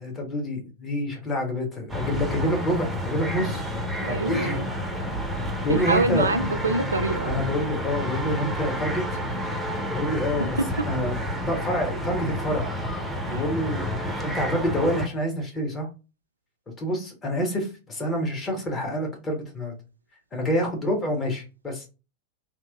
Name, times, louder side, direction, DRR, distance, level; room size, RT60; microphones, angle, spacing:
voice 1, 0.0-3.6 4.1-4.6 5.6-6.3 7.2-9.0 9.9-11.2 11.5-12.7 13.3-13.8 14.2-15.9 16.8-19.7 20.3-21.9, equal, 20° left, 1.2 m, -27 dB
sound 1, 1.9-15.1, equal, 5° right, 0.7 m, -30 dB
voice 2, 4.0-4.7 5.7-7.4 13.3-13.4, right 3 dB, 75° right, 0.4 m, -26 dB
3.0 x 2.5 x 2.3 m
figure-of-eight pair, 90°, 0 cm